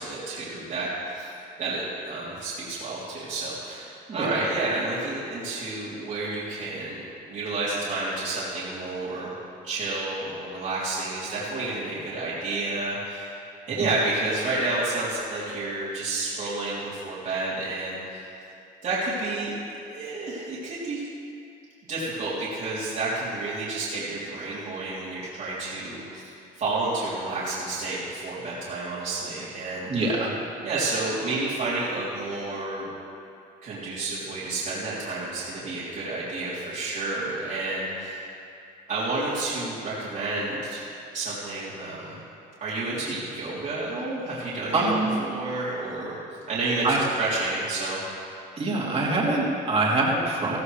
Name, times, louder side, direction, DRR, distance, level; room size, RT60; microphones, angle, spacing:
voice 1, 0.0-7.0 7.3-9.3 9.6-13.3 13.7-18.3 18.8-19.5 19.8-21.0 21.9-30.1 30.6-32.9 33.6-38.2 38.9-40.8 41.1-42.2 42.6-44.9 45.2-46.2 46.5-46.8 47.2-48.0, right 2 dB, 50° right, -10 dB, 3.4 m, -30 dB
voice 2, 29.9-30.3 44.7-45.2 46.8-47.0 48.6-50.6, right 2 dB, 35° right, -5 dB, 3.3 m, -24 dB
15.5 x 15.0 x 3.3 m, 2.6 s
cardioid pair, 110°, 17 cm